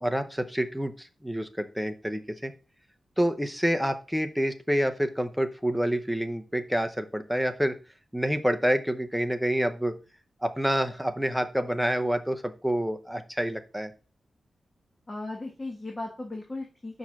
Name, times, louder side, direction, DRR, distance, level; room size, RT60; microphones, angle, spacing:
voice 1, 0.0-2.5 3.2-7.8 8.1-9.9 10.4-13.9, equal, ahead, 6 dB, 0.7 m, -28 dB
voice 2, 15.1-17.0, left 2 dB, 20° left, 1 dB, 1.3 m, -36 dB
5.5 x 4.8 x 5.8 m, 0.33 s
wide cardioid pair, 150°, 0 cm